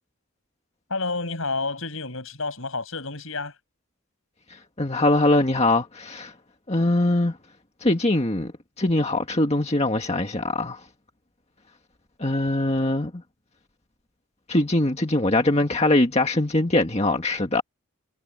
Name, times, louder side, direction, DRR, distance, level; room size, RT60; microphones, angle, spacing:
voice 1, 0.9-3.5, left 3 dB, 65° left, 6.1 m, -30 dB
voice 2, 4.5-6.3 6.7-7.4 7.8-8.5 8.8-10.9 12.2-13.2 14.5-17.6, left 2 dB, 30° left, 1.7 m, -22 dB
head